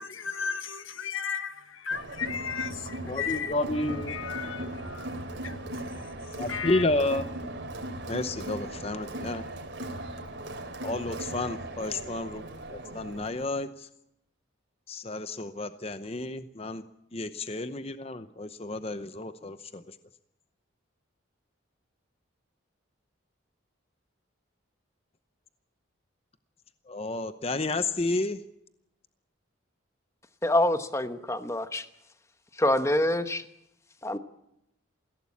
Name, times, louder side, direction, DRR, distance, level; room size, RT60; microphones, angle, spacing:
voice 1, 0.0-3.5 4.1-6.8, left 7 dB, 80° left, 1.4 m, -35 dB
Crowd, 1.9-13.5, right 1 dB, 60° right, 3.1 m, -38 dB
voice 2, 3.1-4.1 6.4-7.2 8.1-9.4 10.8-12.4 12.7-13.9 14.9-16.8 17.1-20.0 26.9-28.4, left 2 dB, 30° left, 0.8 m, -31 dB
voice 3, 30.4-31.8 32.6-33.4 34.0-34.2, left 1 dB, 15° left, 1.0 m, -26 dB
22.0 x 16.5 x 8.5 m
head